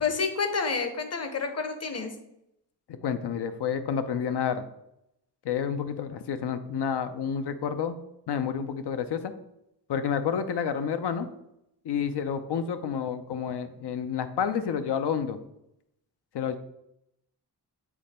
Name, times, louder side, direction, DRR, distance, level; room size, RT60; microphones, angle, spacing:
voice 1, 0.0-2.1, left 5 dB, 35° left, 7 dB, 0.9 m, -29 dB
voice 2, 3.0-4.6 5.4-8.0 8.3-9.3 9.9-11.3 11.8-15.4 16.3-16.6, left 7 dB, 70° left, 10 dB, 0.6 m, -29 dB
7.2 x 3.2 x 4.2 m, 0.82 s
wide cardioid pair, 105°, 42 cm